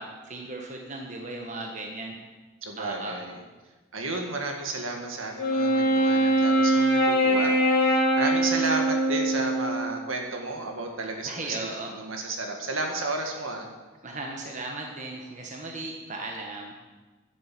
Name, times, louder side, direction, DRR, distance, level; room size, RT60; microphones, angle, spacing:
voice 1, 0.0-2.2 2.8-3.1 11.3-11.9 14.0-16.7, right 2 dB, 35° right, 1 dB, 1.2 m, -36 dB
voice 2, 2.6-3.4 3.9-7.6 7.8-13.7, right 2 dB, 70° right, 2 dB, 1.9 m, -32 dB
Wind instrument woodwind instrument, 5.4-9.9, right 1 dB, 45° left, 2.2 m, -22 dB
10.5 x 7.7 x 7.7 m, 1.2 s
head